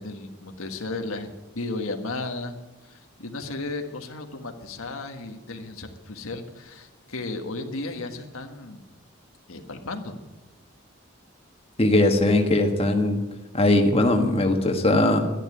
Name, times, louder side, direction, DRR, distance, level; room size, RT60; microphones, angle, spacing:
voice 1, 0.0-2.5 2.9-8.9 9.5-10.2, left 2 dB, 85° left, 5 dB, 1.6 m, -34 dB
voice 2, 11.8-13.2 13.5-15.3, left 2 dB, 30° left, 3 dB, 1.5 m, -20 dB
11.5 x 11.0 x 9.7 m, 1.0 s
head